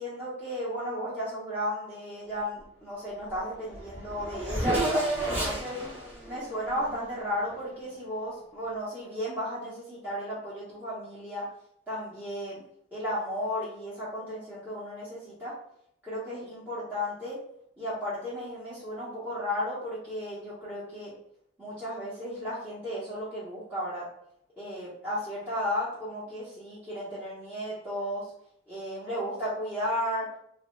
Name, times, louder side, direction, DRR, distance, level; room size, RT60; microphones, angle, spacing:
voice 1, 0.0-5.8 6.3-11.4 11.9-12.6 12.9-15.5 16.0-17.4 17.8-21.1 21.6-24.0 24.6-28.3 28.7-30.3, equal, 10° right, -11 dB, 0.8 m, -34 dB
Race car auto racing / Accelerating revving vroom, 3.3-3.4 3.6-7.6, right 1 dB, 30° right, 1.0 m, -32 dB
3.2 x 2.1 x 3.0 m, 0.71 s
head